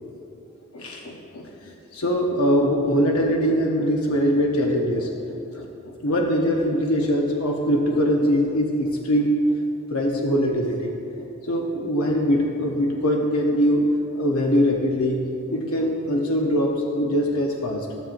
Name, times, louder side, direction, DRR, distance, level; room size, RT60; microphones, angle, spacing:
voice 1, 0.7-9.4 9.9-15.2 15.5-18.0, equal, 90° left, 0 dB, 0.8 m, -22 dB
14.5 x 7.3 x 2.6 m, 2.7 s
head